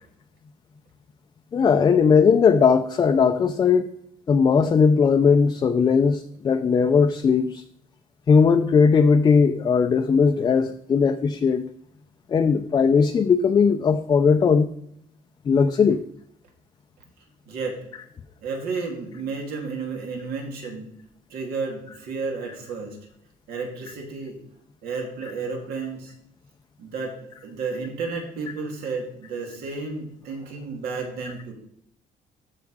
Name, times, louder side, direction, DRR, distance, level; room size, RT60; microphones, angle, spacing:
voice 1, 1.5-3.9 4.3-7.6 8.3-11.7 12.3-14.7 15.5-16.0, left 5 dB, 25° left, 6 dB, 0.4 m, -18 dB
voice 2, 17.5-17.8 18.4-20.9 21.3-23.0 23.5-24.4 24.8-26.1 26.8-27.2 27.4-31.5, right 4 dB, 85° right, 1 dB, 2.6 m, -32 dB
14.0 x 4.8 x 4.8 m, 0.73 s
cardioid pair, 160°, 15 cm